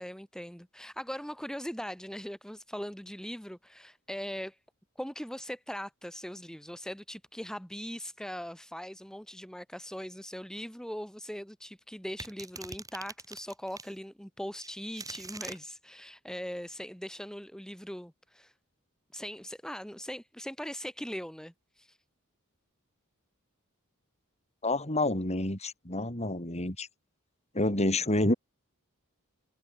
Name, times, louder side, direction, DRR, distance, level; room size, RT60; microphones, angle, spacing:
voice 1, 0.0-4.6 5.0-18.5 19.1-22.0, equal, 5° left, 3.1 m, -40 dB
sound 1, 12.2-13.9 14.6-15.6, right 3 dB, 15° right, 7.1 m, -43 dB
voice 2, 24.6-26.9 27.5-28.3, left 1 dB, 30° left, 6.6 m, -28 dB
head